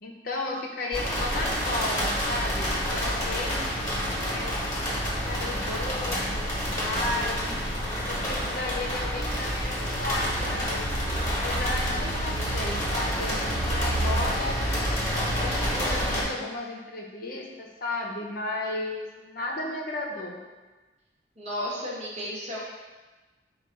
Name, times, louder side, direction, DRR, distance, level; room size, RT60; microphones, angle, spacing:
voice 1, 0.0-3.7 4.2-4.6 5.3-6.4 6.8-7.6 8.0-10.9 11.3-14.6 15.1-20.4, left 2 dB, 55° left, -1 dB, 0.6 m, -34 dB
sound 1, 0.9-16.2, equal, 20° left, 1.1 m, -28 dB
voice 2, 21.4-22.6, equal, 40° right, -5 dB, 1.0 m, -33 dB
4.6 x 2.3 x 4.4 m, 1.2 s
head